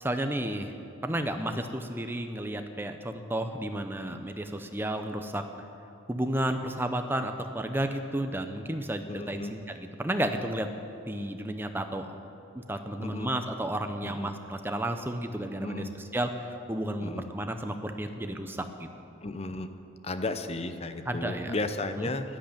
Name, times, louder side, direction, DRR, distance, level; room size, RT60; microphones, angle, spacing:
voice 1, 0.0-0.7 1.0-5.5 6.1-10.7 11.1-12.2 12.5-18.9 21.1-21.5 22.0-22.1, right 1 dB, 10° right, 6 dB, 0.7 m, -32 dB
voice 2, 9.1-9.5 13.0-13.3 14.0-14.3 15.6-15.9 16.3-16.4 17.0-17.3 19.2-19.7 20.0-22.4, left 2 dB, 30° left, 9 dB, 0.7 m, -34 dB
11.0 x 10.5 x 8.7 m, 2.9 s
head